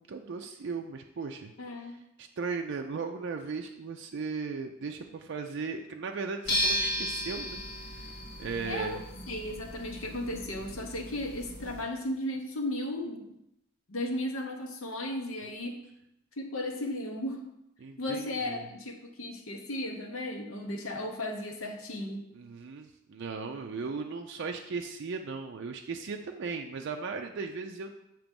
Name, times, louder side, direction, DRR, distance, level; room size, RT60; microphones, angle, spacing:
voice 1, 0.0-9.0 17.8-18.6 22.3-27.9, right 4 dB, 55° right, 3 dB, 0.4 m, -37 dB
voice 2, 1.6-2.0 8.7-9.0 9.3-13.3 13.9-15.8 16.4-17.4 18.0-22.2, left 1 dB, 75° left, 3 dB, 0.9 m, -35 dB
sound 1, 6.4-11.8, left 1 dB, 50° left, 1.5 m, -35 dB
7.2 x 3.0 x 5.2 m, 0.84 s
head